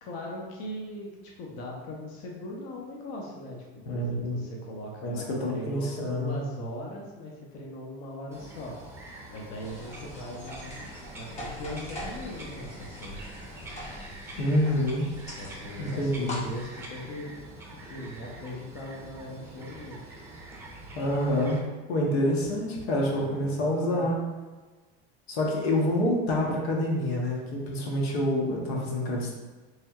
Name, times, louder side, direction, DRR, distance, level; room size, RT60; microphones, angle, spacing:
voice 1, 0.0-3.6 3.9-8.7 9.3-10.8 11.1-13.2 15.4-17.4 17.7-20.2 23.0-24.1, left 1 dB, 55° left, -1 dB, 0.9 m, -39 dB
voice 2, 3.9-4.4 5.0-6.4 14.4-15.1 15.8-16.4 20.9-21.6 21.9-24.2 25.3-29.3, left 1 dB, 90° left, -1 dB, 1.0 m, -27 dB
Bird vocalization bird call bird song, 8.3-21.6, right 2 dB, 10° right, 0.6 m, -45 dB
sound 1, 9.6-16.7, left 1 dB, 20° left, 0.9 m, -42 dB
4.2 x 3.2 x 2.4 m, 1.2 s
supercardioid pair, 130°, 30 cm